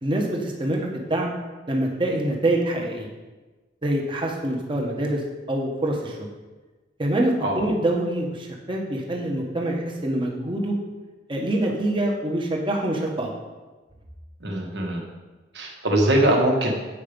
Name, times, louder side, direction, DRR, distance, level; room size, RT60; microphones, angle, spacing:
voice 1, 0.0-1.3 1.7-3.1 3.8-5.2 5.5-6.2 7.0-10.7 11.3-13.3, right 1 dB, 25° right, 0 dB, 1.2 m, -25 dB
voice 2, 14.4-15.0 15.5-16.7, right 1 dB, 65° right, 0 dB, 1.6 m, -21 dB
8.5 x 5.0 x 5.2 m, 1.2 s
head